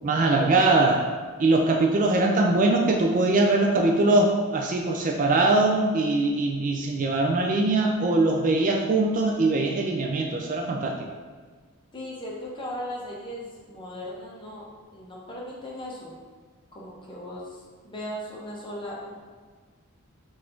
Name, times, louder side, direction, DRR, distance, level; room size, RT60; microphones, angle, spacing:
voice 1, 0.0-1.1 1.4-10.9, right 2 dB, 35° right, 0 dB, 0.3 m, -22 dB
voice 2, 11.9-14.6 14.9-16.1 16.7-17.4 17.8-19.2, equal, 20° left, -4 dB, 0.8 m, -37 dB
4.0 x 2.6 x 4.4 m, 1.5 s
head